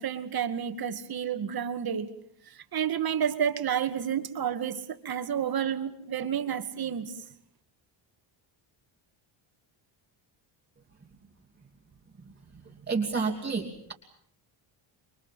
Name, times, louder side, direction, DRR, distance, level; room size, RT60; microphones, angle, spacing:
voice 1, 0.0-2.1 2.7-7.1, right 8 dB, 45° right, 2.3 m, -30 dB
voice 2, 12.9-13.9, right 4 dB, 20° right, 2.9 m, -29 dB
27.5 x 23.5 x 7.5 m
cardioid pair, 130°, 49 cm